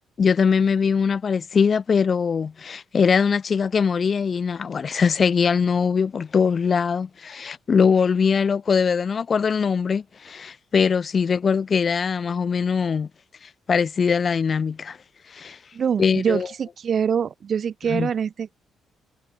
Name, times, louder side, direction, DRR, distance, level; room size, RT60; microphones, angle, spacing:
voice 1, 0.2-13.1 13.7-15.0 15.3-15.6 16.0-16.5 17.9-18.1, left 6 dB, 45° left, 1.3 m, -21 dB
voice 2, 15.7-18.5, right 7 dB, 50° right, 5.2 m, -24 dB
cardioid pair, 90°, 0 cm